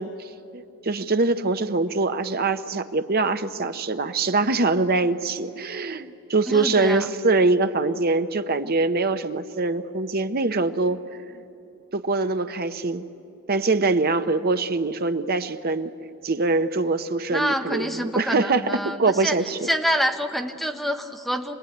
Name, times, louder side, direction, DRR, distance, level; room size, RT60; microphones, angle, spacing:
voice 1, 0.0-11.0 11.3-11.4 11.9-13.0 13.5-15.9 16.2-19.7, right 3 dB, 45° right, 10 dB, 0.9 m, -23 dB
voice 2, 6.5-7.1 17.3-21.5, equal, ahead, 6 dB, 0.8 m, -27 dB
26.5 x 20.0 x 9.2 m, 2.8 s
head